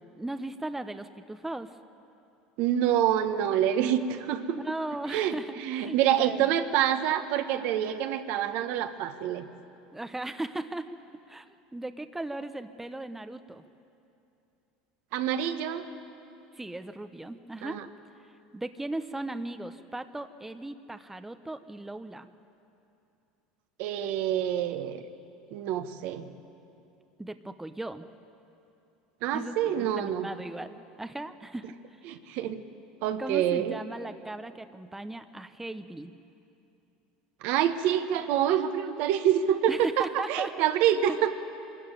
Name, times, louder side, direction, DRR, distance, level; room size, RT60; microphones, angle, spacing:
voice 1, 0.2-1.8 4.5-6.5 9.9-11.0 11.3-13.6 16.5-17.8 18.5-22.3 27.2-28.1 29.3-31.7 32.1-32.2 33.2-36.1 39.7-40.5 40.8-41.2, right 2 dB, 10° right, 9 dB, 0.8 m, -37 dB
voice 2, 2.6-4.6 5.1-9.5 15.1-15.9 17.6-17.8 23.8-25.0 25.5-26.3 29.2-30.3 32.1-32.6 33.0-33.8 37.4-41.4, right 10 dB, 65° right, 8 dB, 1.3 m, -27 dB
24.0 x 14.0 x 9.2 m, 2.7 s
hypercardioid pair, 95°, 3 cm